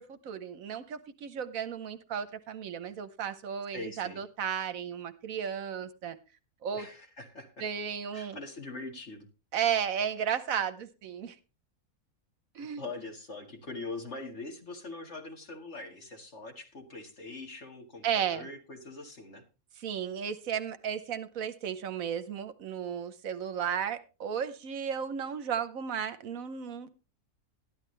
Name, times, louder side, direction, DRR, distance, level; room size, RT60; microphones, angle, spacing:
voice 1, 0.0-6.2 6.6-6.9 7.6-8.4 9.5-11.4 12.5-12.8 18.0-18.5 19.8-26.9, right 8 dB, 75° right, 12 dB, 1.3 m, -34 dB
voice 2, 3.7-4.2 6.7-7.6 8.1-9.3 12.6-19.5, left 3 dB, 50° left, 3 dB, 2.2 m, -43 dB
13.0 x 11.0 x 3.3 m, 0.31 s
omnidirectional pair, 1.5 m